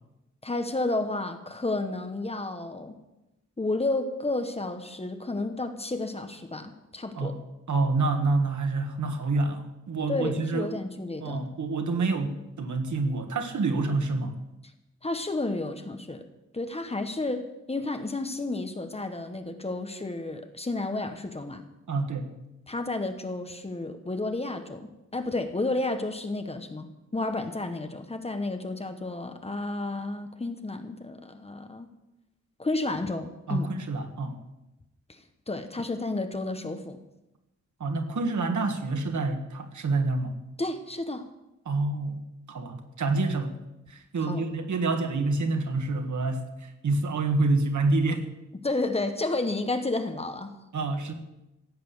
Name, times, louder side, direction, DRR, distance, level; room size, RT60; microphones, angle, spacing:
voice 1, 0.4-3.0 3.6-7.4 10.1-11.5 15.0-16.2 16.5-21.6 22.7-26.9 27.1-31.9 32.6-33.7 35.5-37.0 40.6-41.3 44.2-44.4 48.6-50.5, left 2 dB, 20° left, 7 dB, 1.1 m, -31 dB
voice 2, 7.7-10.7 11.2-14.3 21.9-22.3 33.5-34.4 37.8-40.3 41.6-42.2 42.5-43.6 44.1-46.4 46.8-48.2 50.7-51.1, right 3 dB, 80° right, 6 dB, 1.7 m, -27 dB
16.0 x 8.6 x 7.1 m, 0.95 s
wide cardioid pair, 175°, 29 cm